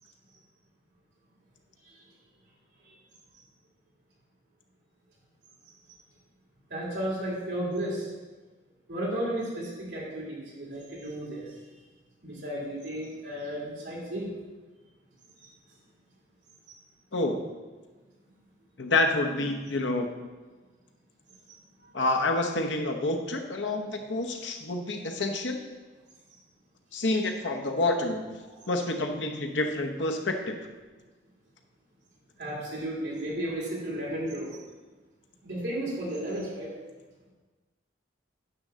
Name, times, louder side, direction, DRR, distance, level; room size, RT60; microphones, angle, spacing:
voice 1, 6.7-8.1 8.9-11.5 12.2-14.3 15.4-15.5 27.1-27.2 28.4-28.5 32.4-34.6 35.4-36.7, right 1 dB, 65° right, -5 dB, 3.0 m, -34 dB
voice 2, 18.8-20.1 21.9-25.6 26.9-28.3 28.7-30.5, left 2 dB, 80° left, 4 dB, 1.0 m, -28 dB
9.5 x 3.8 x 6.7 m, 1.3 s
head